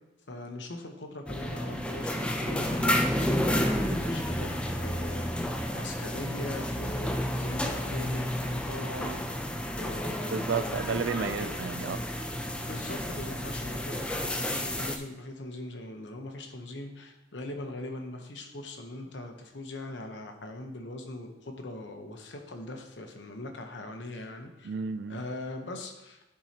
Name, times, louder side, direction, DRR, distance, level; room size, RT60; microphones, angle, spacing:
voice 1, 0.3-9.4 9.8-10.8 11.1-11.5 12.6-24.8 25.1-26.2, left 2 dB, 90° left, 5 dB, 0.9 m, -41 dB
sound 1, 1.3-15.0, left 1 dB, 5° left, 0.4 m, -31 dB
voice 2, 10.3-12.0 24.6-25.2, right 6 dB, 80° right, 13 dB, 0.4 m, -32 dB
10.0 x 4.7 x 2.9 m, 0.95 s
head